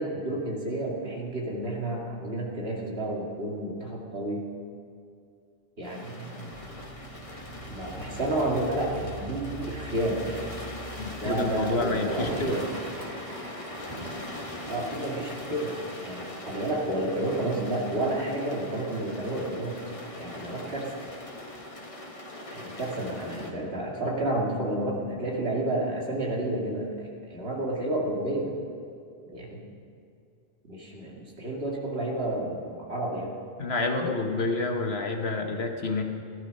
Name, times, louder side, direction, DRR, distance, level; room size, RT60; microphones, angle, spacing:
voice 1, 0.0-4.4 5.8-6.6 7.7-10.5 11.2-12.6 14.7-15.7 16.0-19.8 20.2-21.0 22.5-28.5 29.3-29.6 30.7-33.3, right 1 dB, 70° right, -3 dB, 2.5 m, -30 dB
sound 1, 5.8-23.5, left 1 dB, 30° left, 1.4 m, -41 dB
sound 2, 6.5-11.9, right 1 dB, 25° right, 2.9 m, -43 dB
voice 2, 10.9-12.5 33.6-36.0, left 3 dB, 70° left, 3 dB, 1.5 m, -28 dB
sound 3, 12.0-17.9 18.2-19.0 19.3-19.4 19.6-21.8, equal, 45° right, 2.8 m, -44 dB
17.0 x 11.0 x 5.4 m, 2.4 s
omnidirectional pair, 1.1 m